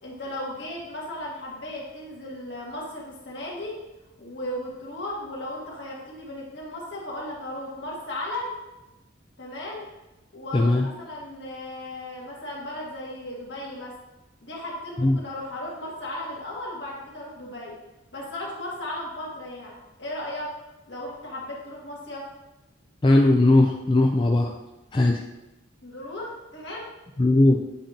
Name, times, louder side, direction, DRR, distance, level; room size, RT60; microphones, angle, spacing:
voice 1, 0.0-3.8 4.2-8.5 9.4-9.9 10.3-13.9 14.4-17.7 18.1-20.5 20.9-22.3 25.8-26.9, left 1 dB, 60° left, -4 dB, 1.7 m, -36 dB
voice 2, 10.5-10.9 15.0-15.2 23.0-24.5 24.9-25.2 27.2-27.6, left 2 dB, 25° left, 1 dB, 0.4 m, -18 dB
7.8 x 5.1 x 2.8 m, 0.99 s
head